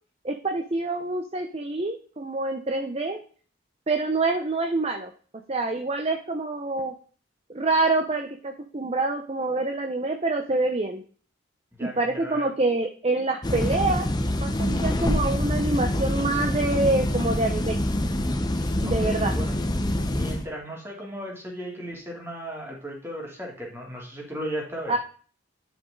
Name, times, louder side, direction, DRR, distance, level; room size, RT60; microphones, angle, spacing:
voice 1, 0.2-3.2 3.9-5.1 5.5-6.9 7.5-11.0 11.8-14.1 14.4-17.8 18.8-19.3 24.9-25.0, right 2 dB, 30° right, 5 dB, 0.7 m, -26 dB
voice 2, 11.8-12.5 15.0-15.1 19.0-19.7 20.1-24.9, right 1 dB, 10° right, -2 dB, 2.8 m, -36 dB
sound 1, 13.4-20.4, left 1 dB, 20° left, 0.7 m, -25 dB
10.0 x 6.2 x 3.8 m, 0.42 s
head